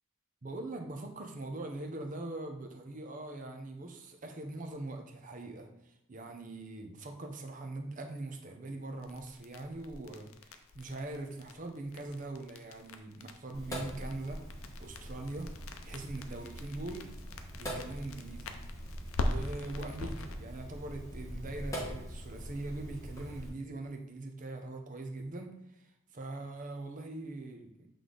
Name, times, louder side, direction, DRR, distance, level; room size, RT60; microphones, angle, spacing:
voice 1, 0.4-14.4 14.8-15.5 15.8-17.1 17.5-18.5 19.2-27.9, right 2 dB, 40° right, 4 dB, 0.7 m, -42 dB
sound 1, 9.0-20.4, left 2 dB, 80° left, 0.6 m, -42 dB
Sink (filling or washing), 13.5-23.5, equal, 15° left, 1.2 m, -43 dB
7.7 x 3.4 x 3.9 m, 0.84 s
head